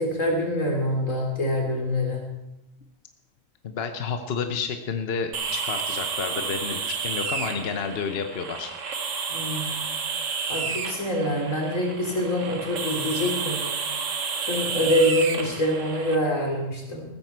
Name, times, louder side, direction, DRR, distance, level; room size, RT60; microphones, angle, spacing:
voice 1, 0.0-2.3 9.3-9.8 10.5-13.6 14.4-17.0, equal, 85° left, -1 dB, 3.9 m, -25 dB
voice 2, 3.6-8.7, left 5 dB, 55° left, 7 dB, 1.1 m, -30 dB
sound 1, 5.3-16.2, right 5 dB, 75° right, 1.6 m, -31 dB
15.5 x 14.0 x 4.6 m, 0.92 s
omnidirectional pair, 1.3 m